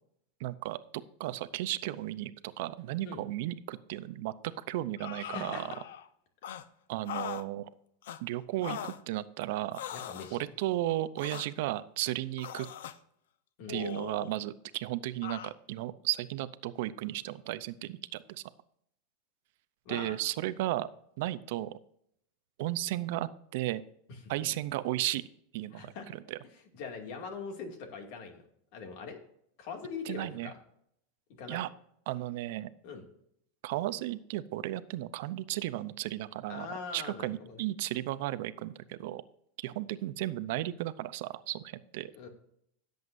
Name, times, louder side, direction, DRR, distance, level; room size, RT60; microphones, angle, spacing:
voice 1, 0.4-0.8 1.2-4.3 4.7-5.7 6.9-7.7 8.2-9.8 10.3-12.7 13.7-18.4 19.9-20.9 21.2-21.7 22.6-23.8 24.3-25.3 25.5-25.9 26.3-26.4 30.1-30.5 31.5-31.7 32.1-32.7 33.6-36.7 36.9-39.2 39.6-42.1, right 15 dB, 60° right, 15 dB, 0.6 m, -34 dB
sound 1, 5.0-6.1 6.4-6.6 7.1-7.5 8.0-8.2 8.6-9.0 9.7-10.3 11.2-11.5 12.4-13.0 13.7-14.4 15.2-15.5, left 10 dB, 85° left, 0.7 m, -40 dB
voice 2, 5.2-5.8 9.9-10.5 13.6-13.8 19.9-20.2 24.1-24.2 25.7-26.1 26.7-28.4 28.7-29.2 29.6-30.6 31.4-31.6 32.8-33.0 36.5-37.6 42.1-42.3, left 5 dB, 55° left, 4 dB, 2.3 m, -42 dB
16.5 x 7.9 x 2.6 m, 0.71 s
supercardioid pair, 155°, 0 cm